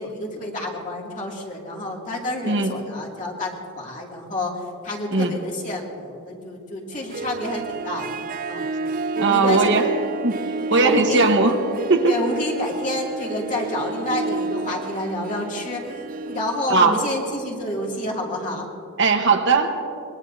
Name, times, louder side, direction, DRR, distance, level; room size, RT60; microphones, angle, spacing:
voice 1, 0.0-8.7 9.1-9.8 10.7-11.3 12.1-18.7, left 1 dB, 35° left, -2 dB, 2.5 m, -29 dB
Harp, 6.9-18.1, right 3 dB, 40° right, 0.4 m, -31 dB
voice 2, 9.2-9.8 10.2-11.6 11.9-12.1 16.7-17.0 19.0-19.8, right 3 dB, 55° right, 4 dB, 1.1 m, -18 dB
24.0 x 21.5 x 2.7 m, 2.6 s
head